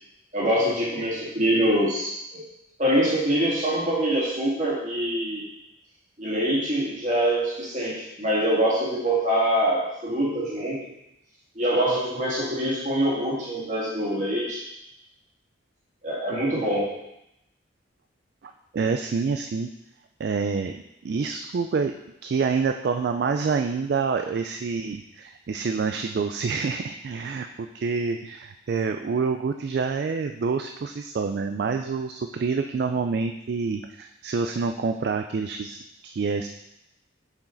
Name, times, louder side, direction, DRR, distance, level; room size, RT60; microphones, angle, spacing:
voice 1, 0.3-2.4 2.8-5.4 6.2-10.8 11.6-14.6 16.0-17.0, right 1 dB, 40° right, -6 dB, 2.2 m, -24 dB
voice 2, 18.4-19.7 20.2-21.9 22.2-36.5, right 5 dB, 55° right, 6 dB, 0.3 m, -27 dB
7.1 x 4.9 x 3.9 m, 0.86 s
head